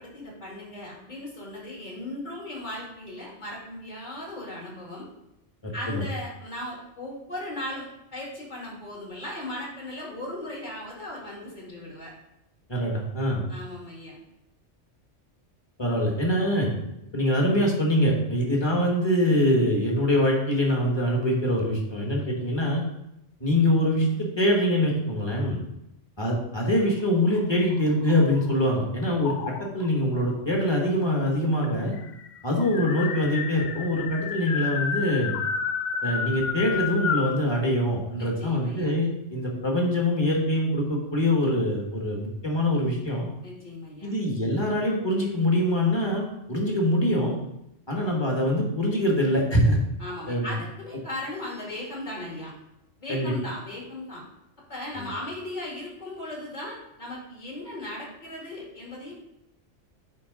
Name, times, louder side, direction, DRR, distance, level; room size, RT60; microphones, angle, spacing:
voice 1, 0.0-5.1 5.7-12.1 13.5-14.2 38.2-38.9 43.4-44.2 50.0-52.5 53.0-54.2 54.7-59.1, left 1 dB, 40° left, -4 dB, 2.0 m, -37 dB
voice 2, 5.6-6.0 12.7-13.4 15.8-16.7 17.1-22.8 23.4-25.6 26.2-29.4 29.7-31.9 32.4-35.4 36.0-43.3 44.0-47.4 47.9-49.8 50.3-50.5 53.1-53.3 55.0-55.1, left 1 dB, 20° left, -1 dB, 1.4 m, -24 dB
sound 1, 27.2-28.7 29.2-29.9 30.9-31.0 31.2-31.3 31.6-37.4, left 6 dB, 60° left, 0.5 m, -31 dB
9.1 x 3.6 x 3.7 m, 0.84 s
omnidirectional pair, 1.2 m